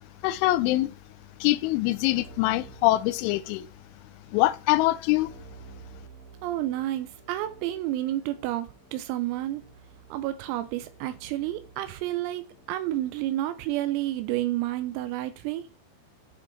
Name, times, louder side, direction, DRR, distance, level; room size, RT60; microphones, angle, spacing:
voice 1, 0.2-0.9 1.4-3.7 4.3-5.3, left 17 dB, 85° left, 2.8 m, -24 dB
Keyboard (musical), 2.1-3.8 5.2-13.6, right 4 dB, 55° left, 2.7 m, -52 dB
voice 2, 6.4-9.6 10.1-15.6, right 14 dB, 90° right, 3.4 m, -30 dB
10.0 x 4.5 x 4.2 m
omnidirectional pair, 6.0 m